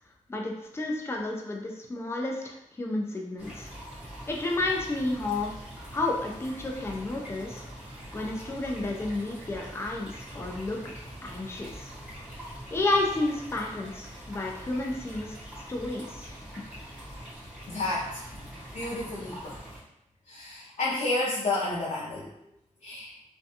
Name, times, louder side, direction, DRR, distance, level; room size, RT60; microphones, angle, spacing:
voice 1, 0.3-3.7 4.3-5.5 5.9-7.6 8.1-10.8 11.2-11.9 12.7-15.4 15.7-16.3 16.6-16.7, left 2 dB, 20° left, 0 dB, 0.4 m, -31 dB
sound 1, 3.4-19.8, equal, 10° right, 1.0 m, -43 dB
voice 2, 17.7-19.6 20.3-22.3 22.8-23.1, left 2 dB, 65° left, -7 dB, 0.5 m, -31 dB
2.5 x 2.2 x 2.7 m, 0.83 s
wide cardioid pair, 95°, 13 cm